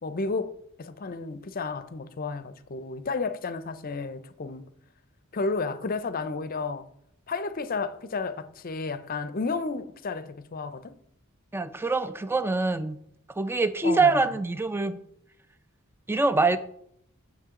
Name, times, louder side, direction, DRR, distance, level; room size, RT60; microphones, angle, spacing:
voice 1, 0.0-4.7 5.3-6.9 7.3-11.0 13.8-14.4, left 4 dB, 45° left, 0.6 m, -32 dB
voice 2, 11.5-13.0 13.4-15.0 16.1-16.6, right 3 dB, 10° right, 0.4 m, -24 dB
9.7 x 6.6 x 3.7 m
head